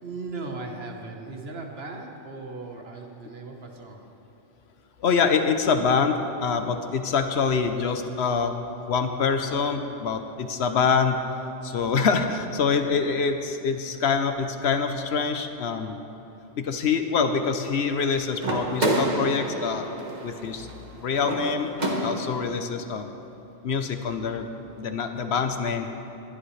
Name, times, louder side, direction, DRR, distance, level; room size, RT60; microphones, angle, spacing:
voice 1, 0.0-4.1, right 3 dB, 60° right, 2 dB, 1.5 m, -37 dB
voice 2, 5.0-8.5 8.9-11.2 11.6-15.9 16.6-19.9 20.2-20.7 21.0-23.1 23.6-24.5 24.8-25.9, left 5 dB, 70° left, 7 dB, 1.0 m, -25 dB
sound 1, 18.4-22.5, right 1 dB, 40° right, 1.5 m, -29 dB
20.5 x 11.5 x 3.2 m, 2.9 s
omnidirectional pair, 1.2 m